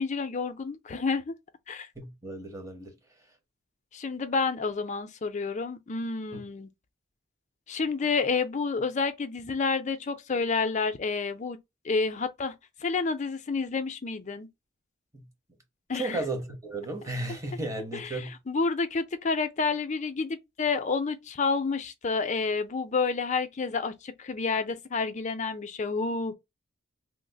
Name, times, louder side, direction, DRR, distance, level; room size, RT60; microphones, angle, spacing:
voice 1, 0.0-1.3 1.7-1.9 3.9-6.7 7.7-11.6 11.8-12.5 12.8-14.5 15.9-16.2 17.3-17.4 17.9-26.3, left 4 dB, 35° left, 0.4 m, -29 dB
voice 2, 2.0-3.0 6.3-6.4 15.1-15.2 15.9-18.3, right 2 dB, 15° right, 0.8 m, -34 dB
3.1 x 2.0 x 3.8 m
head